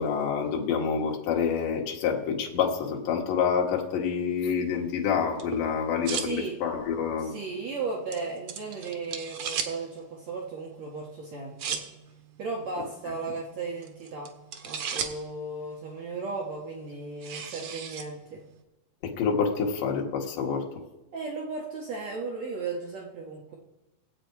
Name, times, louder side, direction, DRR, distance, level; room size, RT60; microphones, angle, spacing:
voice 1, 0.0-7.3 19.0-20.8, left 6 dB, 70° left, -1 dB, 3.2 m, -27 dB
sound 1, 4.6-18.6, right 7 dB, 80° right, 1.2 m, -40 dB
voice 2, 6.2-6.6 7.2-11.8 12.4-14.3 14.6-18.4 21.1-23.5, right 3 dB, 60° right, -1 dB, 2.3 m, -35 dB
21.5 x 8.1 x 4.7 m, 1.0 s
omnidirectional pair, 4.0 m